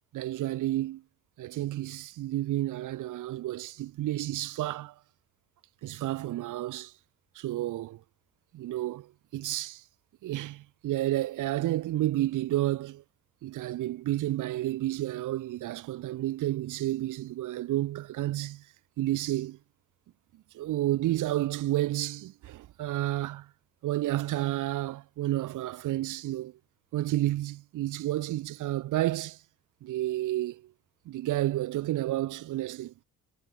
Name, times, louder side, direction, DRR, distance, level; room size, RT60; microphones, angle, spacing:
voice 1, 0.1-1.0 1.4-4.9 5.8-6.9 7.3-8.0 8.5-9.8 10.2-13.0 13.4-18.7 19.0-19.6 20.5-23.5 23.8-26.5 26.9-29.4 29.8-30.7 31.1-32.9, right 15 dB, 85° right, 4.4 m, -31 dB
cardioid pair, 90°, 30 cm